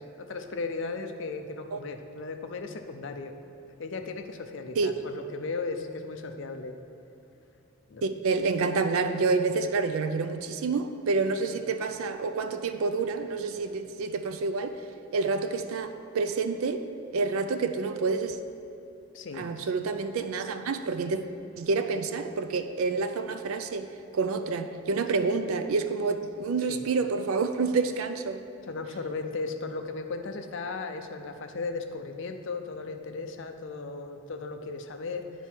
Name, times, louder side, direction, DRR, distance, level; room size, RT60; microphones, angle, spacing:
voice 1, 0.0-3.4 3.8-6.7 7.9-8.1 11.5-11.6 19.1-19.7 26.7-26.8 28.7-35.5, left 3 dB, 60° left, 6 dB, 0.5 m, -36 dB
voice 2, 8.0-14.8 15.1-16.9 17.1-18.4 19.3-21.2 21.6-23.9 24.1-28.4, right 4 dB, 75° right, 9 dB, 0.4 m, -28 dB
9.2 x 4.6 x 4.4 m, 2.7 s
head